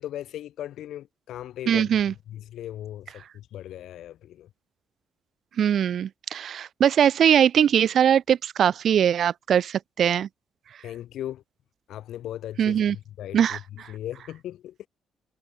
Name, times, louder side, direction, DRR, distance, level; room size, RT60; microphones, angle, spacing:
voice 1, 0.0-4.5 10.8-11.4 11.9-14.9, left 12 dB, 75° left, 2.3 m, -38 dB
voice 2, 1.7-2.1 5.6-10.3 12.6-13.0 13.3-13.9, right 9 dB, 60° right, 0.4 m, -21 dB
cardioid pair, 90°, 0 cm